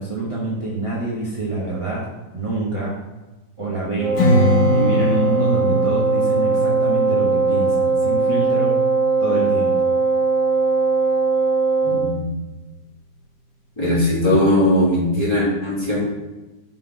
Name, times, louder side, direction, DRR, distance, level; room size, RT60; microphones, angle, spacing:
voice 1, 0.0-2.1 2.3-3.0 3.6-4.2 4.7-8.8 9.2-10.0, right 2 dB, 20° right, -6 dB, 0.9 m, -26 dB
Wind instrument woodwind instrument, 4.0-12.2, right 3 dB, 60° right, 1.4 m, -19 dB
Strum, 4.2-9.4, left 1 dB, 75° left, 2.2 m, -23 dB
voice 2, 11.8-12.3 13.8-16.0, left 1 dB, 15° left, -8 dB, 2.2 m, -19 dB
5.7 x 3.9 x 4.7 m, 1.1 s
omnidirectional pair, 1.9 m